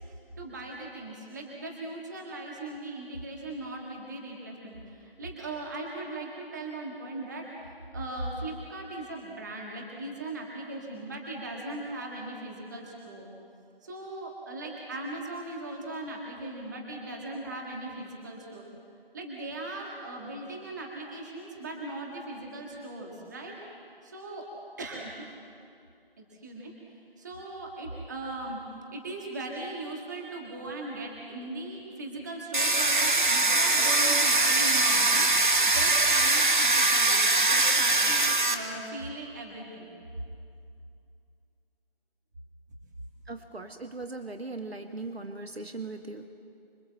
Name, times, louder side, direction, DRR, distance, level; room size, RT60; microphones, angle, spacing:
voice 1, 0.4-7.5 7.9-13.3 13.8-18.6 19.1-23.5 24.0-24.5 24.8-25.3 26.2-26.7 27.2-28.6 28.9-39.9, right 2 dB, 20° right, -1 dB, 1.8 m, -38 dB
Domestic sounds home sounds, 32.5-38.5, right 2 dB, 50° right, 2.1 m, -22 dB
voice 2, 43.3-46.3, right 3 dB, 90° right, 6 dB, 1.7 m, -39 dB
26.0 x 22.5 x 7.6 m, 2.5 s
figure-of-eight pair, 165°, 30 cm